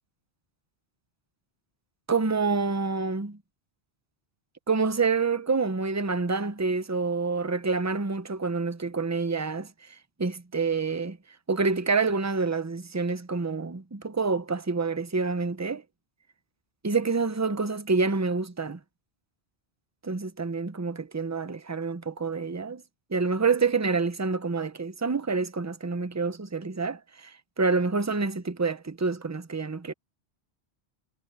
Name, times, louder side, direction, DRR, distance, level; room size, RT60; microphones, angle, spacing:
voice 1, 2.1-3.4 4.7-11.2 11.5-15.8 16.8-18.8 20.0-22.8 23.1-29.9, right 4 dB, 20° right, 0.7 m, -27 dB
omnidirectional pair, 1.1 m